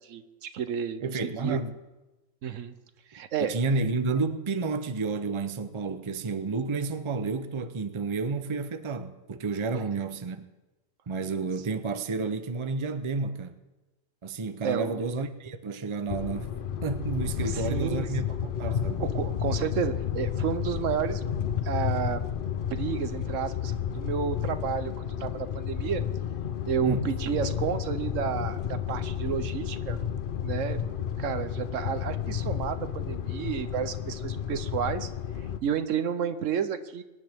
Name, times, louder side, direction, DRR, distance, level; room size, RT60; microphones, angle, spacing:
voice 1, 0.0-1.0 1.4-1.6 2.4-2.8 3.1-3.6 9.7-9.8 14.6-15.0 17.4-18.1 19.0-21.2 21.6-22.2 22.7-26.0 26.7-30.0 30.4-30.8 31.2-35.1 35.6-37.0, right 8 dB, 75° right, 1.1 m, -31 dB
voice 2, 1.0-1.8 3.4-10.4 11.1-13.5 14.2-16.5 16.8-19.0 26.8-27.1, right 4 dB, 30° right, 0.6 m, -31 dB
sound 1, 16.1-35.6, left 8 dB, 50° left, 0.7 m, -31 dB
24.0 x 10.5 x 3.5 m
omnidirectional pair, 1.3 m